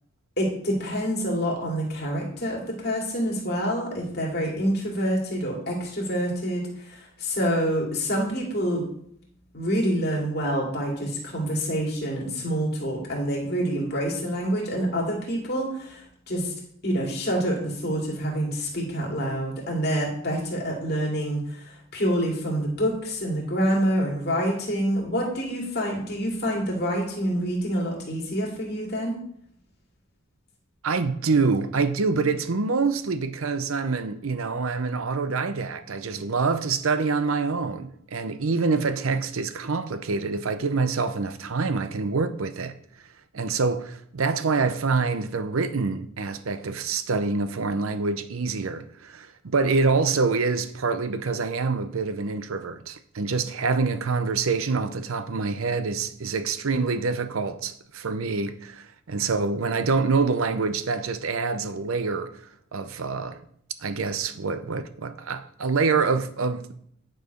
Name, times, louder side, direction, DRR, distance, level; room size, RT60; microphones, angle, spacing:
voice 1, 0.4-8.9 9.5-16.5 16.8-29.2, equal, 50° left, 2.4 m, -27 dB
voice 2, 30.8-42.7 43.3-62.3 62.7-63.4 63.8-66.7, right 4 dB, 75° right, 0.6 m, -26 dB
9.5 x 4.6 x 5.1 m
head